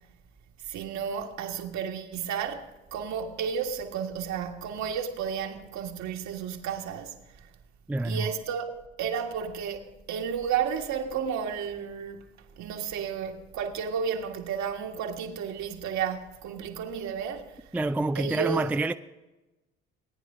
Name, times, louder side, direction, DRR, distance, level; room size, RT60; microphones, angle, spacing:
voice 1, 0.6-7.2 8.0-8.7 9.0-12.2 12.6-17.6 18.2-18.6, right 7 dB, 55° right, 1.7 m, -32 dB
voice 2, 7.9-8.3 17.7-18.9, right 2 dB, 5° right, 0.4 m, -27 dB
18.0 x 9.9 x 3.6 m
hypercardioid pair, 65°, 33 cm